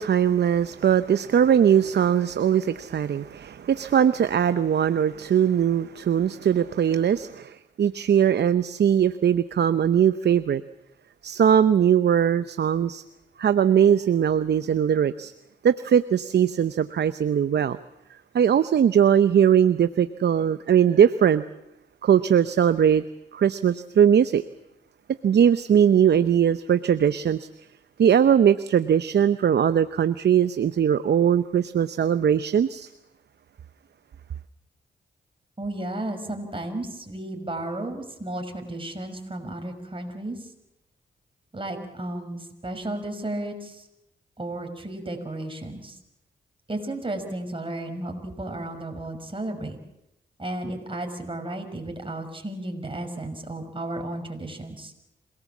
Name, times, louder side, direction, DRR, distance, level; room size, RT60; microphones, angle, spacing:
voice 1, 0.0-10.6 11.2-13.0 13.4-15.3 15.6-17.8 18.3-21.4 22.0-23.0 23.3-24.4 25.2-27.5 28.0-32.9, right 8 dB, 65° right, 12 dB, 0.8 m, -20 dB
voice 2, 35.6-40.5 41.5-43.9 44.4-46.0 46.7-49.8 50.4-54.9, right 1 dB, 30° right, 4 dB, 5.8 m, -33 dB
27.0 x 18.5 x 7.3 m, 0.88 s
supercardioid pair, 50°, 19 cm